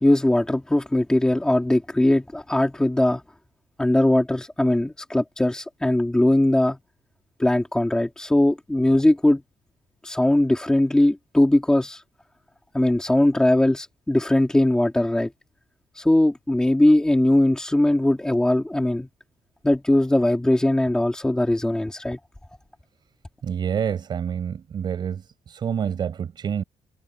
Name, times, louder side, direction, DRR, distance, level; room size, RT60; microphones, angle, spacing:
voice 1, 0.0-3.2 3.8-6.8 7.4-9.4 10.0-12.0 12.7-15.3 16.0-19.1 19.6-22.2, left 1 dB, 5° left, 2.1 m, -20 dB
voice 2, 23.4-26.6, right 8 dB, 40° right, 5.2 m, -27 dB
cardioid pair, 165°, 11 cm